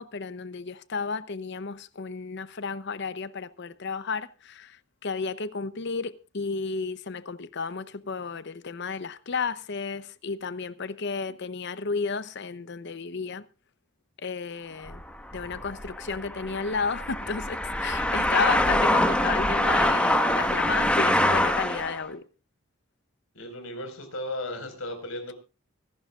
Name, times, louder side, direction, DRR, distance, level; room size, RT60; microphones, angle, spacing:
voice 1, 0.0-4.8 5.0-13.4 14.2-15.0 15.3-22.2, left 5 dB, 55° left, 0.7 m, -32 dB
sound 1, 14.9-22.0, left 1 dB, 5° left, 1.3 m, -25 dB
voice 2, 23.3-25.3, left 1 dB, 85° left, 5.0 m, -35 dB
24.5 x 12.0 x 2.4 m
head